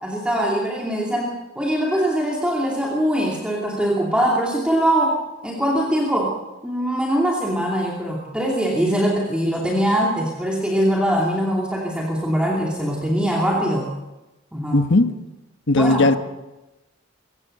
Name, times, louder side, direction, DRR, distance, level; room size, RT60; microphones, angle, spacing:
voice 1, 0.0-5.2 5.4-6.3 6.6-13.9 14.5-14.8 15.7-16.0, equal, 5° right, -3 dB, 2.7 m, -22 dB
voice 2, 14.7-15.1 15.7-16.2, left 2 dB, 60° left, 9 dB, 1.3 m, -17 dB
24.0 x 16.5 x 6.6 m, 1.0 s
head